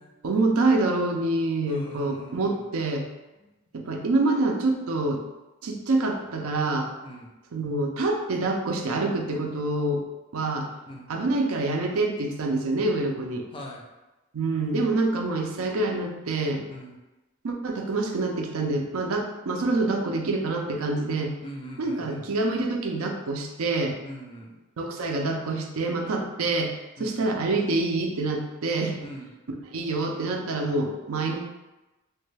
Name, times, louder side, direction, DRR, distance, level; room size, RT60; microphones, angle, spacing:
voice 1, 0.2-3.1 3.7-5.2 5.6-6.9 7.5-10.0 10.3-10.7 11.1-13.5 14.3-16.6 17.4-21.3 21.8-24.0 24.8-29.0 29.7-31.4, right 2 dB, 80° right, 2 dB, 0.5 m, -26 dB
voice 2, 1.7-2.7 3.4-3.5 7.0-7.3 10.9-11.1 13.5-13.8 16.7-17.0 21.4-22.3 24.0-24.6 27.0-27.2 29.0-29.3, equal, 25° left, -1 dB, 0.4 m, -41 dB
3.1 x 2.2 x 3.2 m, 1.1 s
head